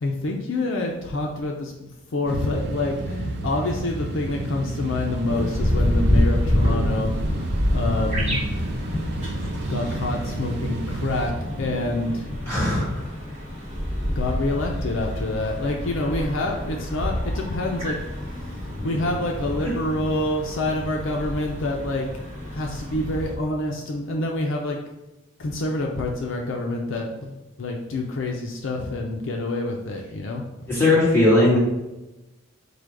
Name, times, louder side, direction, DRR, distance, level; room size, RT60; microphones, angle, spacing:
voice 1, 0.0-7.1 7.7-8.7 9.7-12.2 14.2-18.0 18.8-22.1 22.5-24.8 25.4-30.4, left 2 dB, 60° left, 1 dB, 0.5 m, -27 dB
sound 1, 2.3-11.3, right 2 dB, 50° right, 0.4 m, -31 dB
sound 2, 5.3-23.4, left 1 dB, 30° right, 1.0 m, -28 dB
voice 2, 12.5-12.9 19.6-19.7 30.7-31.6, left 2 dB, 10° left, -7 dB, 1.5 m, -18 dB
4.9 x 2.2 x 4.7 m, 1.0 s
head